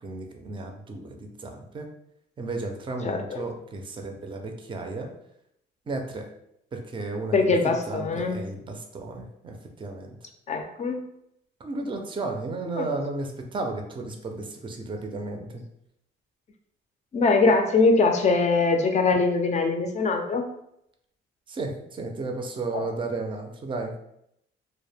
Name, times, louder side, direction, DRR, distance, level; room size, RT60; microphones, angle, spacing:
voice 1, 0.0-1.9 2.4-5.1 5.9-6.3 6.7-10.2 11.6-15.6 21.5-23.9, right 3 dB, 25° right, 3 dB, 0.4 m, -33 dB
voice 2, 3.0-3.4 7.3-8.5 10.5-11.0 12.8-12.9 17.1-20.5 22.7-22.8, left 3 dB, 35° left, 5 dB, 0.4 m, -22 dB
2.1 x 2.1 x 3.3 m, 0.78 s
cardioid pair, 90°, 20 cm